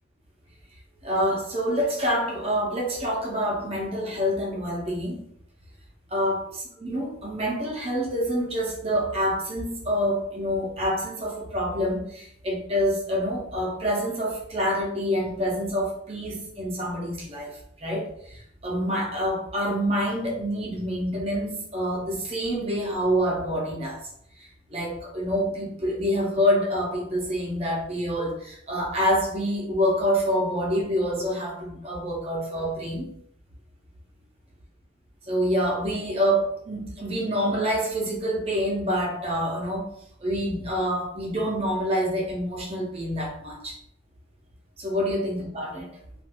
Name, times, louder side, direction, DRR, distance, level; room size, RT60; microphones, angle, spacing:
voice 1, 1.0-5.2 6.1-17.5 17.8-18.4 18.6-24.0 24.7-33.1 35.3-39.9 40.2-43.7 44.8-45.9, equal, 35° right, -2 dB, 0.8 m, -27 dB
2.6 x 2.4 x 3.5 m, 0.69 s
head